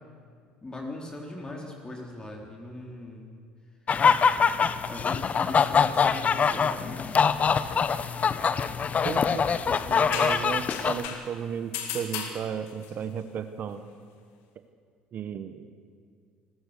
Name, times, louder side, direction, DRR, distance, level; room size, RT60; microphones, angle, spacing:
voice 1, 0.6-3.3 4.9-7.1, left 2 dB, 20° left, 0 dB, 3.7 m, -39 dB
sound 1, 3.9-11.1, left 6 dB, 35° left, 0.9 m, -24 dB
voice 2, 9.0-9.5 9.9-13.8 15.1-15.7, right 8 dB, 50° right, 10 dB, 1.1 m, -34 dB
sound 2, 9.8-11.3 11.7-12.9, left 7 dB, 70° left, 2.2 m, -35 dB
28.5 x 14.0 x 6.7 m, 2.1 s
hypercardioid pair, 75°, 4 cm